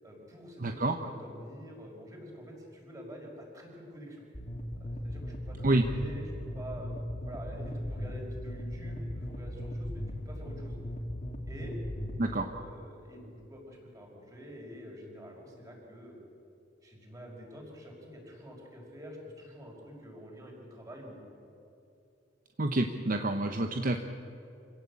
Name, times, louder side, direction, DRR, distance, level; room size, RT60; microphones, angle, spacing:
voice 1, 0.0-4.2 4.8-6.9 7.2-10.7 11.5-11.7 12.3-16.2 16.8-21.2, equal, 20° right, -1 dB, 5.5 m, -47 dB
voice 2, 0.6-1.0 5.6-5.8 12.2-12.5 22.6-24.0, right 2 dB, 45° right, 6 dB, 1.0 m, -28 dB
sound 1, 4.3-12.3, left 1 dB, 40° left, 2.5 m, -38 dB
26.5 x 17.0 x 8.5 m, 2.8 s
head